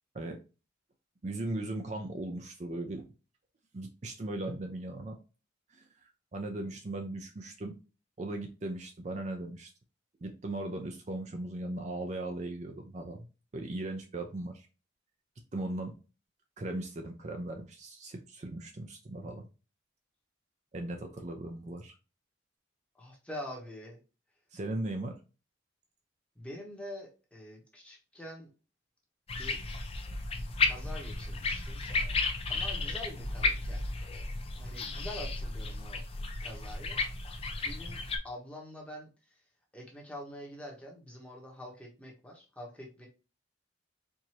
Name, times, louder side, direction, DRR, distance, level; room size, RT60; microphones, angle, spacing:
voice 1, 1.2-3.1 3.7-5.2 5.7-7.8 8.2-9.7 10.2-13.3 13.5-14.7 15.5-15.9 16.6-19.5 20.7-22.0 24.5-25.2, right 2 dB, 35° right, 4 dB, 0.5 m, -38 dB
voice 2, 22.9-24.0 26.4-28.5 29.3-29.6 30.6-31.8 32.5-33.9 34.5-36.0 36.4-37.0 37.6-39.1 39.7-43.1, left 1 dB, 5° left, -1 dB, 1.0 m, -45 dB
sound 1, 29.3-38.2, left 3 dB, 30° left, 0.5 m, -33 dB
4.5 x 2.6 x 2.9 m, 0.32 s
head